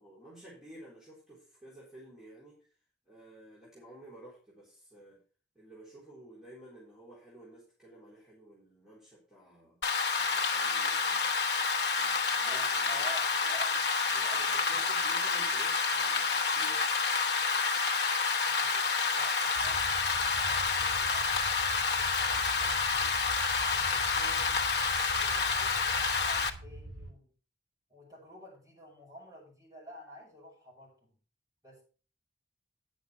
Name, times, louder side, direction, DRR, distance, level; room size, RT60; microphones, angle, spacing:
voice 1, 0.0-2.7 3.1-5.2 5.5-9.8 10.2-11.3 12.0-13.1 14.1-16.9, right 1 dB, 5° right, -8 dB, 3.9 m, -53 dB
Rain, 9.8-26.5, left 4 dB, 70° left, 1.1 m, -29 dB
voice 2, 12.4-13.8 14.2-15.1 18.4-21.3 21.7-23.1 23.7-24.6 25.1-27.3 27.9-31.2 31.6-31.8, equal, 20° right, -3 dB, 6.0 m, -51 dB
sound 1, 19.5-27.1, right 1 dB, 80° right, 2.5 m, -45 dB
9.9 x 7.0 x 5.1 m, 0.39 s
head